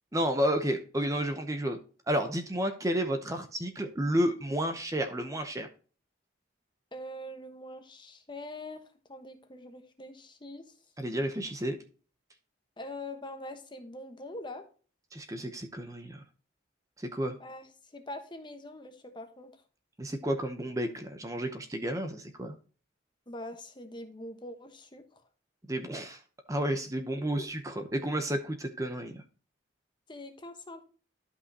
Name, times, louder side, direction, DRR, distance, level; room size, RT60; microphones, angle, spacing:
voice 1, 0.1-1.8 2.1-5.7 11.0-11.8 15.1-16.2 17.0-17.4 20.0-22.5 25.7-26.2 26.5-29.2, equal, 15° right, 7 dB, 0.7 m, -31 dB
voice 2, 6.9-8.8 9.1-10.7 12.8-14.6 17.4-19.5 23.3-25.0 27.2-27.5 30.1-30.8, left 1 dB, 25° left, 7 dB, 1.1 m, -43 dB
12.0 x 5.5 x 2.8 m, 0.39 s
head